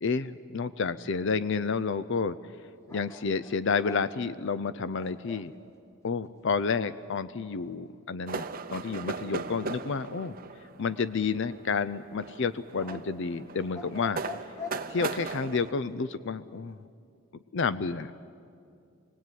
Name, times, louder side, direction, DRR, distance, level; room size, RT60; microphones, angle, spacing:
voice 1, 0.0-2.6 2.9-5.5 6.0-10.4 10.8-14.2 14.9-16.8 17.5-18.2, left 5 dB, 55° left, 14 dB, 0.5 m, -30 dB
sound 1, 2.9-5.5 10.9-11.8 12.8-15.5, left 2 dB, 15° left, 1.4 m, -44 dB
sound 2, 8.3-15.7, right 4 dB, 40° right, 0.8 m, -38 dB
25.5 x 19.5 x 9.3 m, 2.5 s
head